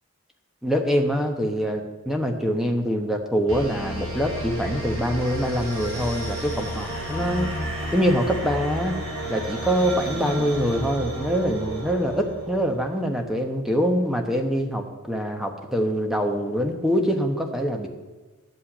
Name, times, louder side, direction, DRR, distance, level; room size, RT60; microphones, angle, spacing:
voice 1, 0.6-7.5 7.9-8.9 9.3-17.9, equal, ahead, 3 dB, 1.0 m, -24 dB
sound 1, 3.5-12.9, right 1 dB, 60° right, 3.8 m, -32 dB
11.5 x 5.5 x 8.6 m, 1.2 s
head